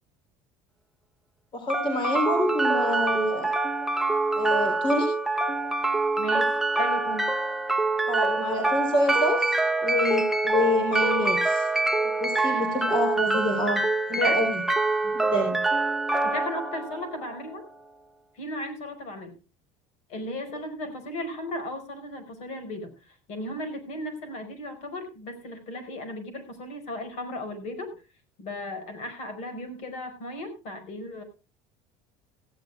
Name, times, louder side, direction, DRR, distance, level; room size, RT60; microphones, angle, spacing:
voice 1, 1.5-3.5 4.4-5.1 8.1-11.7 12.2-14.6 15.0-15.6, left 1 dB, 40° left, 6 dB, 3.7 m, -27 dB
sound 1, 1.7-17.7, right 2 dB, 5° right, 0.9 m, -25 dB
voice 2, 6.2-7.3 14.2-14.4 16.2-17.6 18.4-19.4 20.1-27.9 28.4-31.2, left 1 dB, 60° left, 9 dB, 5.0 m, -36 dB
17.5 x 16.0 x 2.3 m, 0.30 s
cardioid pair, 145°, 13 cm